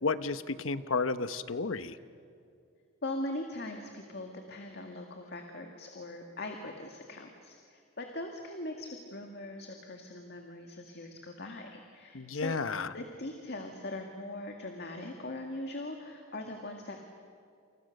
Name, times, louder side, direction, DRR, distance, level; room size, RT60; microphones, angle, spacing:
voice 1, 0.0-2.0 12.1-12.9, left 4 dB, 85° left, 12 dB, 1.0 m, -32 dB
voice 2, 3.0-12.6 12.9-17.0, left 1 dB, 55° left, 3 dB, 2.1 m, -41 dB
29.0 x 28.5 x 6.6 m, 2.4 s
head